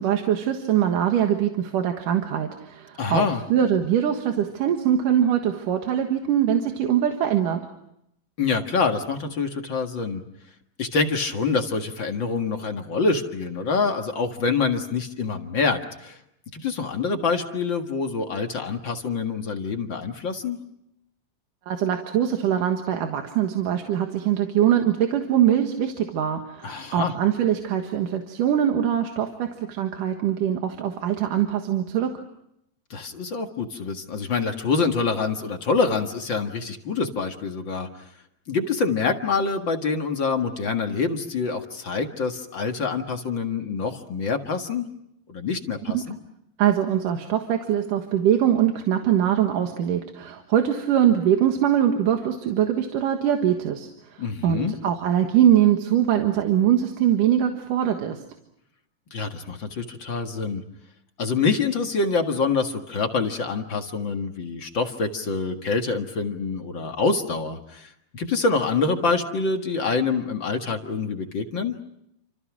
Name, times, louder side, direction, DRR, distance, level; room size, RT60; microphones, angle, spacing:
voice 1, 0.0-7.7 21.7-32.1 45.9-46.0 46.6-58.2, right 10 dB, 70° right, 5 dB, 3.1 m, -22 dB
voice 2, 3.0-3.4 8.4-10.2 10.8-16.2 16.5-20.6 26.6-27.1 32.9-37.9 38.5-44.9 45.3-46.2 54.2-54.8 59.1-60.6 61.2-71.8, left 4 dB, 40° left, 4 dB, 2.0 m, -26 dB
29.5 x 26.5 x 6.1 m, 0.79 s
omnidirectional pair, 3.9 m